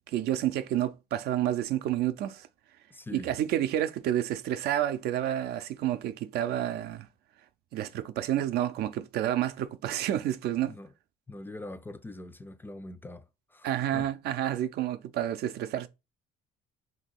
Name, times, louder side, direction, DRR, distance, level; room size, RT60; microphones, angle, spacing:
voice 1, 0.1-2.5 3.1-7.1 7.7-10.8 13.6-15.9, right 12 dB, 70° right, 0.5 m, -29 dB
voice 2, 2.9-3.3 10.6-10.9 11.3-13.2 13.5-14.1, left 2 dB, 10° left, 0.3 m, -43 dB
3.0 x 2.7 x 4.3 m
cardioid pair, 110°, 17 cm